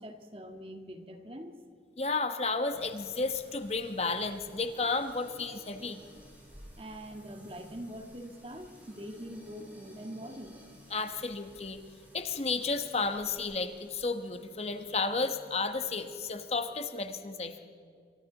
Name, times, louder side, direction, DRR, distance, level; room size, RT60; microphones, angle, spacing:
voice 1, 0.0-1.6 6.8-10.6, equal, 30° right, 5 dB, 1.8 m, -43 dB
voice 2, 2.0-6.0 10.9-11.8 12.1-17.6, left 3 dB, 35° left, 8 dB, 1.1 m, -32 dB
sound 1, 2.7-16.9, equal, 10° right, 7.8 m, -56 dB
28.0 x 24.5 x 4.1 m, 2.2 s
head